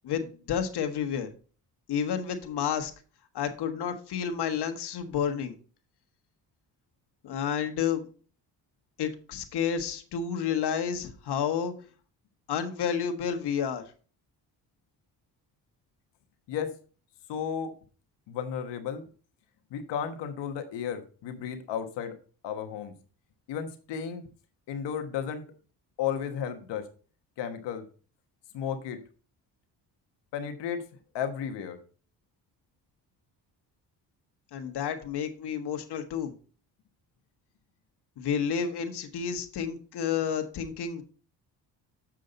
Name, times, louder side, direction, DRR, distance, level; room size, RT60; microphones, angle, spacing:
voice 1, 0.0-1.3 1.9-2.9 3.3-5.6 7.2-8.1 9.0-11.7 12.5-13.8 34.5-36.3 38.2-41.0, left 7 dB, 70° left, 6 dB, 1.5 m, -30 dB
voice 2, 17.3-17.7 18.3-19.0 19.7-22.2 22.4-22.9 23.5-24.3 24.7-25.5 26.0-26.9 27.4-27.8 28.5-29.0 30.3-30.8 31.1-31.8, left 8 dB, 85° left, 7 dB, 1.2 m, -33 dB
7.5 x 6.4 x 4.0 m, 0.38 s
cardioid pair, 75°, 41 cm